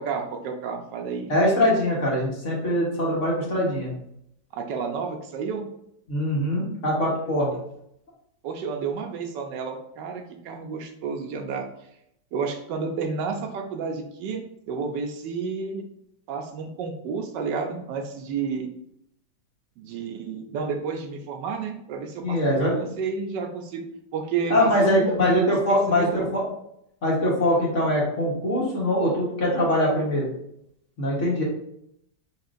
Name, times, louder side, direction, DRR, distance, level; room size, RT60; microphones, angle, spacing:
voice 1, 0.0-1.3 4.5-5.7 8.4-11.7 12.3-15.9 16.3-18.7 19.8-23.8 24.1-26.4, right 5 dB, 80° right, 4 dB, 1.2 m, -31 dB
voice 2, 1.3-3.9 6.1-7.5 22.2-22.8 24.5-26.5 27.0-30.3 31.0-31.4, left 1 dB, 45° left, -4 dB, 1.4 m, -22 dB
5.5 x 3.7 x 2.5 m, 0.76 s
omnidirectional pair, 2.0 m